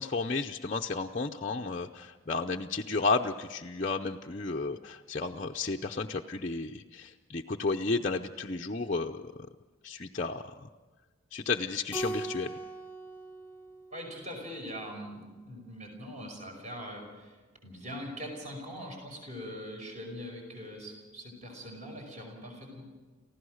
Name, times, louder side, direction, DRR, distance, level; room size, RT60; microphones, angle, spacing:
voice 1, 0.0-9.3 9.8-10.7 11.3-12.5, left 3 dB, 35° left, 1 dB, 0.6 m, -32 dB
Keyboard (musical), 11.9-14.6, right 2 dB, 10° left, 1.0 m, -40 dB
voice 2, 13.9-17.3 17.6-22.8, equal, 35° right, 2 dB, 5.3 m, -42 dB
30.0 x 15.5 x 6.4 m, 1.3 s
head